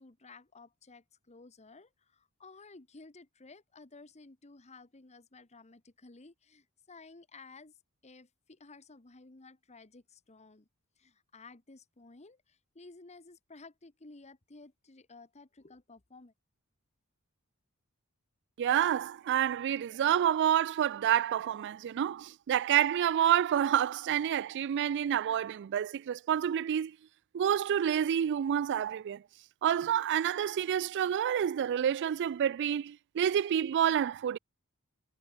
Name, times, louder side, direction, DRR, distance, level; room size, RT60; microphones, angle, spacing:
voice 1, 0.0-7.7 8.0-10.7 11.0-16.3, left 3 dB, 30° left, 1.2 m, -54 dB
voice 2, 18.6-27.0 27.3-29.2 29.6-34.4, right 9 dB, 55° right, 0.3 m, -28 dB
head